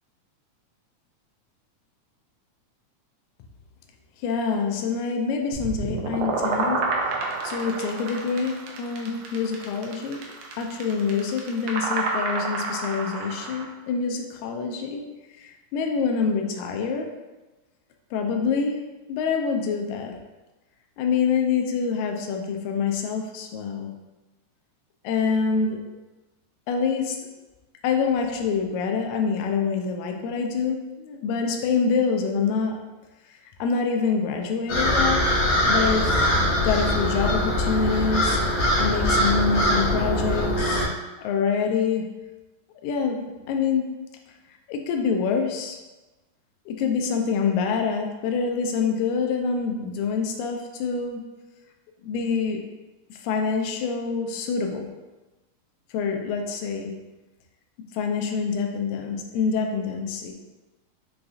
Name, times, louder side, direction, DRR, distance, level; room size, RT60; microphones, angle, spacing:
voice 1, 4.2-6.8 7.4-10.2 10.6-15.0 15.4-17.1 18.1-18.8 19.1-20.2 21.0-23.9 25.0-25.8 26.7-27.2 27.8-32.8 33.3-35.3 35.7-36.2 36.6-38.4 38.8-40.9 41.2-42.1 42.8-43.9 44.7-45.8 46.7-51.2 52.0-52.6 53.1-54.9 55.9-56.9 57.9-60.3, left 5 dB, 80° left, 3 dB, 1.9 m, -26 dB
sound 1, 5.5-13.7, right 3 dB, 80° right, 1.8 m, -29 dB
sound 2, 34.7-40.8, left 1 dB, 65° left, 1.7 m, -22 dB
5.6 x 2.6 x 2.4 m, 1.1 s
omnidirectional pair, 3.5 m